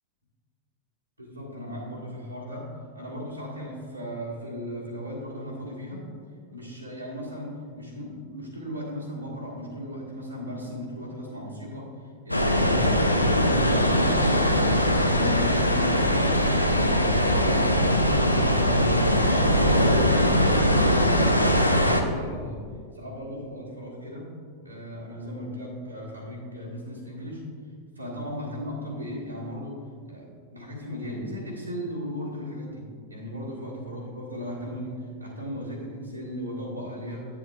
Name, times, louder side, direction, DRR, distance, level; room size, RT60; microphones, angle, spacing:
voice 1, 1.2-6.0 6.5-18.0 18.3-19.0 19.4-22.6 22.9-24.3 24.6-27.4 27.9-29.8 30.1-37.3, equal, 85° right, -6 dB, 1.7 m, -37 dB
sound 1, 12.3-22.0, equal, 85° left, 0.5 m, -21 dB
9.1 x 7.3 x 2.4 m, 2.1 s
figure-of-eight pair, 90°, 0 cm